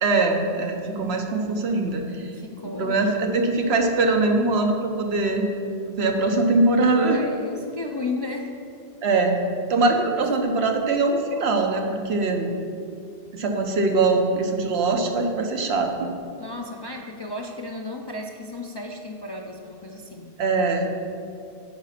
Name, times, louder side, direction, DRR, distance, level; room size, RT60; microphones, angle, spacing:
voice 1, 0.0-2.3 2.6-5.4 5.9-7.2 9.0-9.4 9.7-12.5 13.3-16.1 20.4-20.9, right 3 dB, 90° right, 3 dB, 1.2 m, -22 dB
voice 2, 2.3-3.1 6.9-8.6 9.8-9.9 16.4-20.3, left 2 dB, 40° left, 0 dB, 0.4 m, -34 dB
9.4 x 5.0 x 5.8 m, 2.6 s
omnidirectional pair, 1.1 m